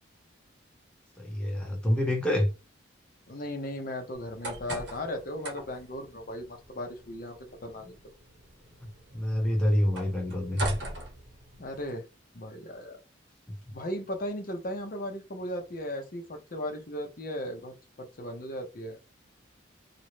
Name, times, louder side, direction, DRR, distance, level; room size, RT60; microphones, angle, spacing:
voice 1, 1.2-2.5 8.8-10.8, left 1 dB, 5° left, 0.7 m, -27 dB
voice 2, 3.3-7.9 11.6-12.0 12.3-13.0 13.7-19.0, left 1 dB, 45° left, 0.7 m, -37 dB
sound 1, 4.1-11.9, right 1 dB, 65° right, 1.0 m, -41 dB
2.6 x 2.1 x 3.0 m
head